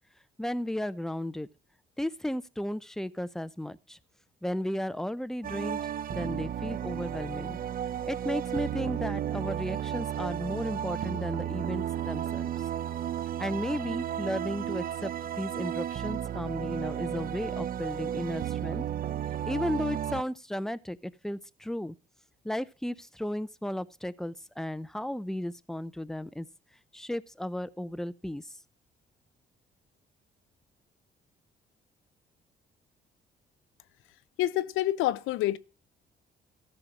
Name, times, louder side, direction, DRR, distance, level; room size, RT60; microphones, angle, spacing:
voice 1, 0.4-1.5 2.0-4.0 4.4-5.8 6.1-7.6 8.1-12.5 13.4-15.1 15.4-18.8 19.4-21.9 22.4-26.5 26.9-28.5, left 1 dB, ahead, 0.6 m, -34 dB
sound 1, 5.4-20.2, right 10 dB, 45° right, 0.5 m, -33 dB
voice 2, 34.4-35.6, left 14 dB, 90° left, 0.6 m, -27 dB
14.0 x 5.7 x 4.9 m
cardioid pair, 90°, 20 cm